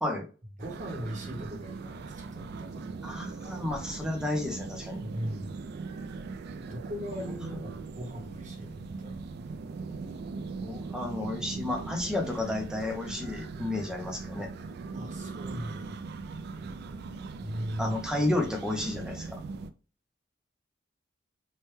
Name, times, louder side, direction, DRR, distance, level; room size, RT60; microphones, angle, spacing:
voice 1, 0.6-2.9 5.0-5.6 6.7-9.2 14.9-15.9 17.4-17.9, equal, 40° right, 1 dB, 0.9 m, -38 dB
sound 1, 0.6-19.7, right 4 dB, 55° right, 0.3 m, -40 dB
voice 2, 3.0-5.0 10.6-14.5 17.8-19.4, left 2 dB, 5° right, 2 dB, 0.5 m, -32 dB
3.1 x 2.2 x 3.1 m, 0.35 s
head